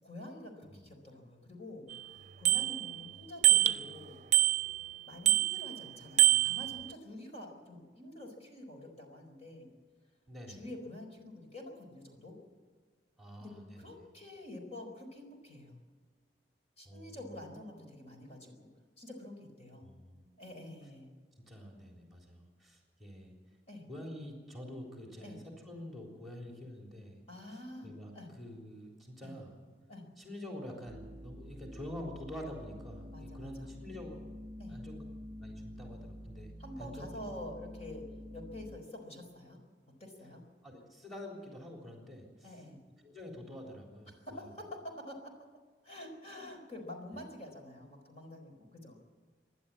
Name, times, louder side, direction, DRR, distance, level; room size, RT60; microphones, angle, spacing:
voice 1, 0.0-1.9 2.4-4.3 5.1-9.7 10.5-12.4 13.4-15.8 16.8-18.7 19.0-19.9 20.4-21.1 23.7-23.9 25.2-25.4 27.3-28.3 29.2-29.4 29.9-30.1 33.1-33.7 34.6-34.8 36.6-38.1 38.3-39.6 40.0-40.4 42.4-42.8 44.1-45.4 45.8-49.0, left 1 dB, 40° left, 2 dB, 4.5 m, -47 dB
Bicycle bell, 1.9-2.0 2.5-3.1 3.4-3.9 4.3-4.9 5.3-5.8 6.2-6.9, right 13 dB, 45° right, 0.5 m, -26 dB
voice 2, 10.3-10.7 13.2-13.9 16.8-17.5 19.8-20.2 21.4-23.3 23.9-27.2 27.5-29.5 30.2-34.2 34.7-35.0 35.4-37.1 40.6-42.6 43.0-44.5, left 1 dB, ahead, -1 dB, 3.7 m, -47 dB
sound 1, 30.9-38.8, equal, 15° right, 3.4 m, -48 dB
27.0 x 11.5 x 8.6 m, 1.5 s
head